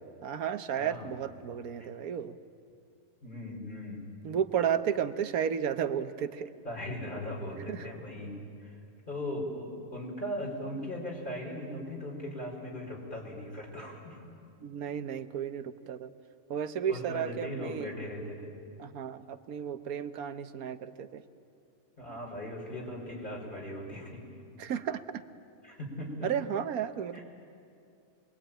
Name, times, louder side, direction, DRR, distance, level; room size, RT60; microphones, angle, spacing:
voice 1, 0.2-2.3 4.2-6.5 7.7-7.8 14.6-16.1 16.5-17.9 18.8-21.2 24.6-25.0 26.2-27.2, right 8 dB, 75° right, 10 dB, 1.4 m, -33 dB
voice 2, 0.7-1.1 3.2-4.0 6.6-8.3 8.6-8.8 9.1-14.2 16.9-18.5 22.0-24.2 25.6-26.3 27.1-27.2, left 1 dB, 35° left, -2 dB, 5.6 m, -38 dB
27.5 x 22.0 x 9.0 m, 2.4 s
omnidirectional pair, 1.6 m